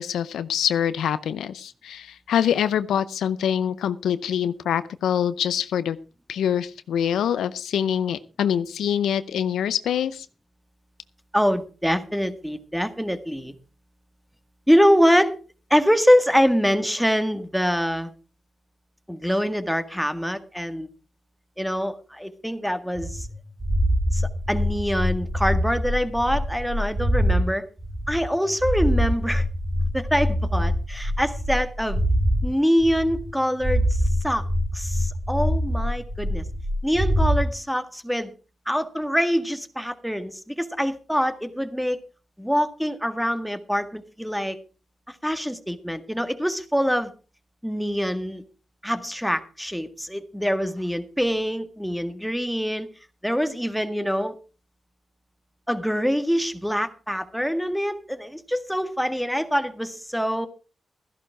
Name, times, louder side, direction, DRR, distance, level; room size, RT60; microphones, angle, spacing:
voice 1, 0.0-6.0 6.3-10.3, left 9 dB, 90° left, 14 dB, 0.6 m, -25 dB
voice 2, 11.3-13.5 14.7-15.4 15.7-18.1 19.1-20.9 21.6-23.3 24.1-27.7 28.1-29.5 29.9-32.0 32.4-34.4 34.7-36.4 36.8-38.3 38.7-42.0 42.4-44.6 45.1-47.1 47.6-48.4 48.8-52.9 53.2-54.4 55.7-60.5, equal, ahead, 9 dB, 1.8 m, -24 dB
sound 1, 22.9-27.4 27.8-32.4 32.8-33.3 33.6-37.4, equal, 25° right, 3.8 m, -24 dB
14.0 x 11.0 x 4.6 m, 0.35 s
cardioid pair, 50°, 0 cm